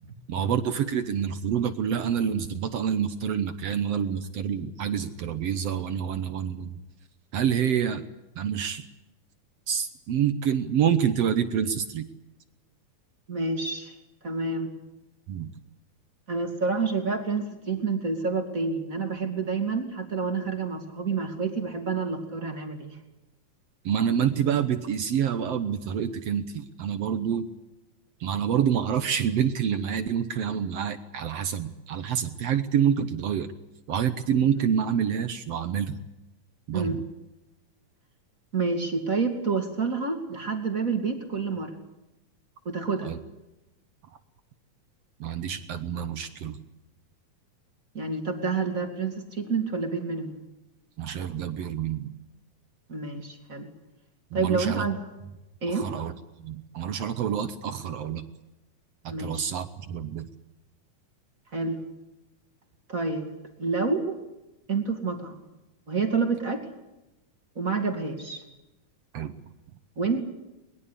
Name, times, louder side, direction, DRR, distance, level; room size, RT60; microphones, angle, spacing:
voice 1, 0.3-6.8 7.3-8.0 8.4-8.9 9.7-12.1 15.3-15.5 23.8-27.5 28.2-33.5 33.9-36.0 36.7-37.0 43.0-43.2 45.2-46.6 51.0-52.1 54.3-54.9 55.7-56.1 56.4-58.3 59.0-60.3 69.1-69.3, right 8 dB, 65° right, 11 dB, 1.8 m, -27 dB
voice 2, 13.3-13.9 14.2-14.7 16.3-23.0 36.7-37.0 38.5-41.7 42.6-43.1 47.9-50.4 52.9-53.7 54.3-55.0 55.6-55.9 59.1-59.4 61.5-61.8 62.9-63.3 63.6-64.2 64.7-65.4 65.9-66.6 67.5-68.4 70.0-70.2, right 4 dB, 25° right, 5 dB, 3.0 m, -28 dB
22.5 x 21.5 x 8.4 m, 0.98 s
omnidirectional pair, 3.7 m